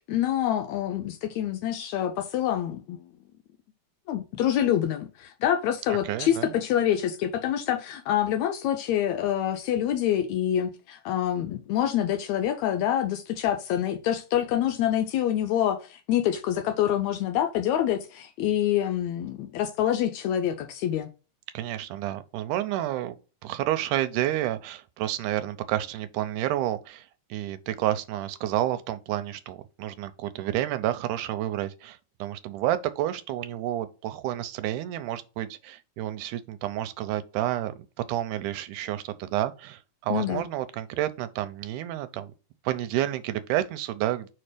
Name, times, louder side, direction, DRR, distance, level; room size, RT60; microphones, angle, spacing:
voice 1, 0.1-3.0 4.1-21.1 40.1-40.4, left 10 dB, 80° left, 1.7 m, -26 dB
voice 2, 5.9-6.5 21.5-23.2 23.4-37.7 38.1-42.3 42.6-44.3, right 13 dB, 80° right, 2.1 m, -30 dB
4.6 x 4.4 x 5.0 m
omnidirectional pair, 3.7 m